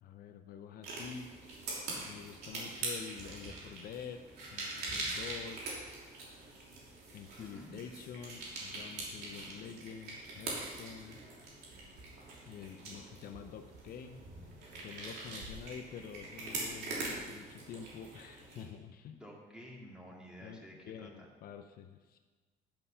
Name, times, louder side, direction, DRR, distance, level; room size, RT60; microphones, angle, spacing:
voice 1, 0.0-1.6 2.1-4.2 4.5-5.8 7.1-11.2 12.4-14.2 14.8-19.2 20.4-22.2, left 7 dB, 60° left, 7 dB, 0.6 m, -48 dB
sound 1, 0.8-18.6, right 2 dB, 75° right, 3.2 m, -43 dB
voice 2, 7.4-7.8 19.1-21.3, equal, 5° right, -2 dB, 2.2 m, -51 dB
10.5 x 5.6 x 5.6 m, 1.4 s
cardioid pair, 110°, 17 cm